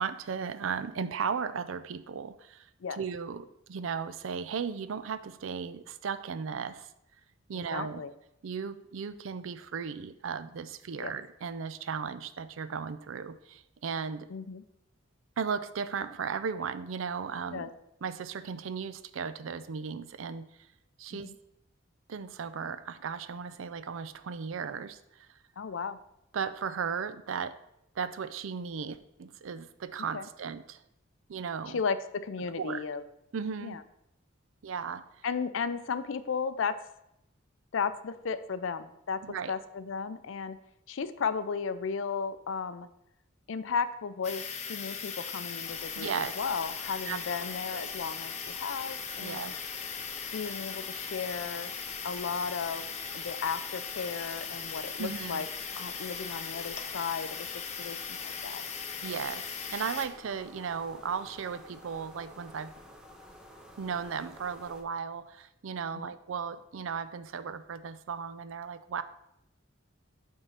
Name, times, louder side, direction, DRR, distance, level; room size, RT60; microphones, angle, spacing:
voice 1, 0.0-6.9 7.5-8.1 8.4-14.3 15.4-17.7 18.0-20.5 21.0-21.3 22.1-25.3 26.3-27.6 28.0-30.8 31.3-31.8 32.4-32.8 33.3-33.8 34.6-35.1 39.2-39.6 46.0-46.3 47.0-47.2 47.7-47.9 49.2-49.5 55.0-55.5 59.0-62.7 63.8-69.0, right 6 dB, 70° right, 13 dB, 0.4 m, -36 dB
voice 2, 7.7-8.1 11.0-11.1 14.3-14.6 17.5-17.7 21.2-21.3 25.6-26.0 30.1-30.2 31.7-33.0 33.6-33.8 35.2-36.8 37.7-40.6 40.9-42.9 43.5-44.4 44.7-46.1 46.4-49.5 50.3-51.7 52.0-52.9 53.1-55.5 55.8-57.5 57.8-58.6 65.9-66.1, left 5 dB, 65° left, 13 dB, 0.5 m, -34 dB
sound 1, 44.2-60.1, left 6 dB, 35° left, 0.7 m, -39 dB
sound 2, 45.6-64.8, left 1 dB, 5° right, 0.7 m, -51 dB
8.0 x 3.6 x 5.6 m, 0.81 s
head